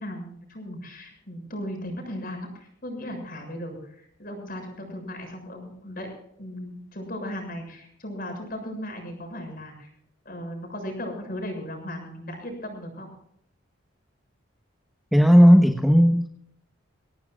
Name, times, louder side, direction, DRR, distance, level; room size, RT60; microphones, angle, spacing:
voice 1, 0.0-6.1 6.4-9.9 10.3-13.1, equal, 45° left, 3 dB, 7.0 m, -36 dB
voice 2, 15.1-16.3, equal, ahead, 2 dB, 1.2 m, -15 dB
25.0 x 17.0 x 2.4 m, 0.66 s
head